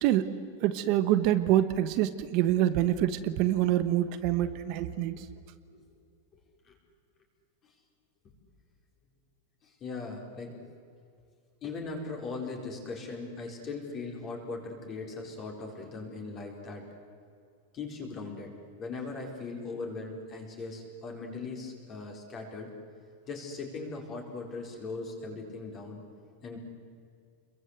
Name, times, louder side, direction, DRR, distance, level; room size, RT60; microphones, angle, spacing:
voice 1, 0.0-5.3, right 12 dB, 40° right, 11 dB, 1.2 m, -26 dB
voice 2, 9.6-10.8 11.6-16.9 17.7-18.5 18.8-22.7 23.3-26.0 26.4-26.6, left 3 dB, 25° left, 1 dB, 4.2 m, -39 dB
29.0 x 22.5 x 8.1 m, 2.3 s
supercardioid pair, 170°, 0 cm